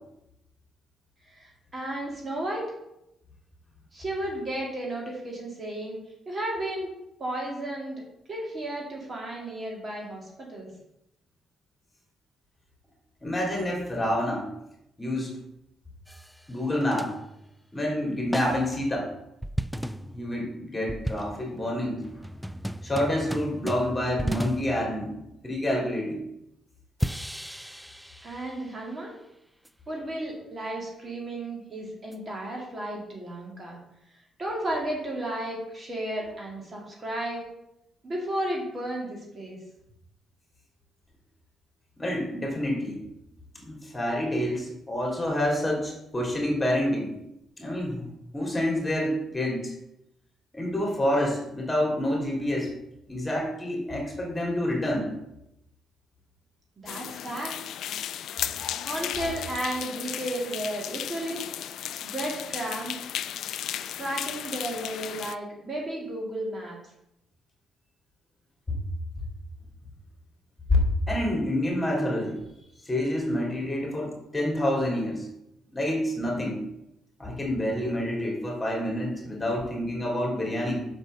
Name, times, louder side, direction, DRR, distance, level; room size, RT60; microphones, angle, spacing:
voice 1, 1.2-2.7 3.9-6.0 6.3-6.9 7.2-8.0 8.3-10.7 27.6-27.8 28.2-29.2 29.9-33.8 34.4-37.4 38.0-39.6 56.8-57.5 58.8-61.6 62.0-63.0 64.0-66.8, right 1 dB, 35° right, -1 dB, 2.1 m, -33 dB
voice 2, 13.2-14.5 15.0-15.3 16.5-17.1 17.7-19.1 20.0-22.2 22.8-26.2 42.0-43.0 43.6-47.1 47.6-48.0 48.3-49.7 50.5-52.7 53.1-55.1 58.9-59.3 68.7-68.8 70.7-70.8 71.1-72.4 72.8-75.3 75.7-76.6 77.2-80.9, left 1 dB, 15° left, -1 dB, 3.2 m, -28 dB
sound 1, 16.1-16.5 16.8-17.7 18.3-18.8 19.4-25.6 27.0-28.8 29.7-29.8 32.1-32.2, equal, ahead, 0.3 m, -35 dB
sound 2, 56.9-65.3, left 10 dB, 75° left, 0.4 m, -35 dB
6.2 x 5.3 x 6.8 m, 0.85 s
cardioid pair, 90°, 0 cm